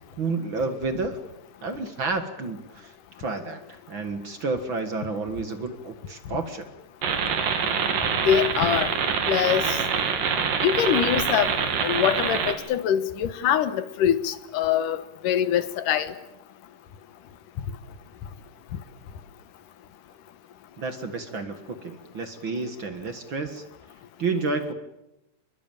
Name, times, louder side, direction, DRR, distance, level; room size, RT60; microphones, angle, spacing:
voice 1, 0.2-1.2 1.6-6.7 20.8-23.6 24.2-24.7, right 3 dB, 45° right, 9 dB, 1.9 m, -30 dB
sound 1, 7.0-12.5, right 6 dB, 85° right, 4.0 m, -25 dB
voice 2, 8.3-8.9 9.3-9.8 10.6-11.5 11.8-16.1, left 9 dB, 80° left, 13 dB, 2.8 m, -23 dB
26.0 x 22.0 x 8.9 m, 0.91 s
omnidirectional pair, 3.7 m